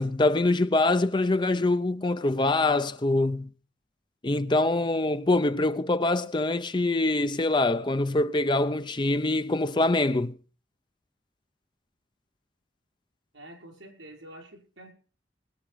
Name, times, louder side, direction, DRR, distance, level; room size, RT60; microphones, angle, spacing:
voice 1, 0.0-3.5 4.2-10.4, left 2 dB, 25° left, 0.6 m, -24 dB
voice 2, 13.3-14.9, right 1 dB, 90° right, 5.8 m, -47 dB
21.0 x 9.8 x 5.1 m
head